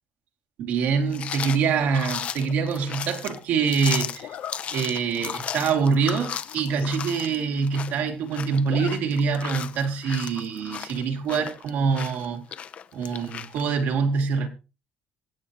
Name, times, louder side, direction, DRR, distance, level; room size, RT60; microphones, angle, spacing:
voice 1, 0.6-4.3 4.7-12.4 12.9-14.5, right 5 dB, 75° right, 2.6 m, -25 dB
sound 1, 1.1-13.6, left 8 dB, 40° left, 0.6 m, -35 dB
Zipper (clothing), 2.3-2.6 4.2-4.6 5.1-5.3 5.6-5.7 6.0-6.1 6.3-7.0 7.3-7.4 7.6-8.1 8.5-9.0 9.3-9.4 10.7-11.1, left 9 dB, 80° left, 2.3 m, -40 dB
23.0 x 8.5 x 3.0 m
cardioid pair, 155°, 3 cm